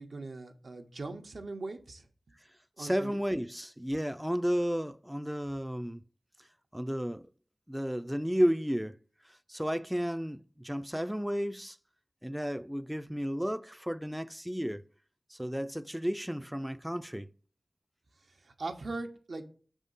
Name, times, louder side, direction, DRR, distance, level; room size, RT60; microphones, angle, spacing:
voice 1, 0.0-2.1 2.8-3.2 18.4-19.4, right 3 dB, 85° right, 0.9 m, -40 dB
voice 2, 2.8-6.0 6.7-7.2 7.7-9.0 9.5-11.8 12.2-14.8 15.3-17.3, equal, 5° right, 0.3 m, -32 dB
6.4 x 3.6 x 5.3 m
wide cardioid pair, 70°, 0 cm